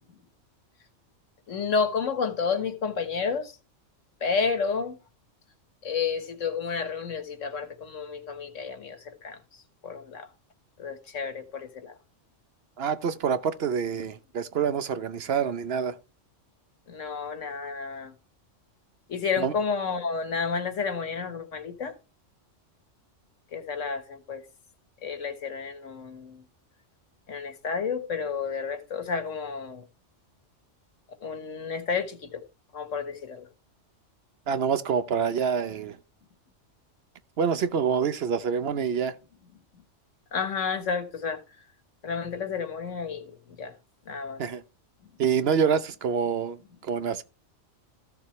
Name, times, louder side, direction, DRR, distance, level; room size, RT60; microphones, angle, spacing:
voice 1, 1.5-3.6 4.2-5.0 5.8-10.3 10.8-12.0 16.9-18.2 19.1-21.9 23.5-24.4 25.0-26.4 27.3-29.8 31.2-32.4 32.7-33.5 40.3-41.4 42.0-43.7 44.1-44.4, left 5 dB, 90° left, 1.8 m, -31 dB
voice 2, 12.8-16.0 19.4-19.5 34.5-36.0 37.4-39.1 44.4-44.6 45.2-47.2, right 7 dB, 60° right, 0.9 m, -26 dB
14.0 x 6.9 x 3.1 m
omnidirectional pair, 1.3 m